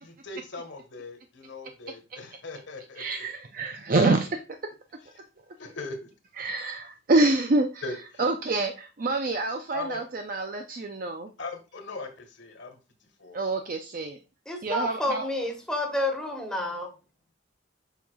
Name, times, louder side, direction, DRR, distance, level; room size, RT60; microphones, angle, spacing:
voice 1, 0.0-3.3 5.6-6.1 7.8-8.2 9.7-10.0 11.4-12.8 13.2-13.4, left 3 dB, 70° left, 4 dB, 1.6 m, -39 dB
voice 2, 3.0-4.4 6.4-7.8 8.2-11.3 13.3-14.2 14.6-15.3, right 2 dB, 45° right, 5 dB, 0.5 m, -26 dB
voice 3, 14.5-16.9, left 1 dB, 5° left, 1 dB, 1.4 m, -29 dB
7.2 x 5.6 x 2.3 m, 0.32 s
head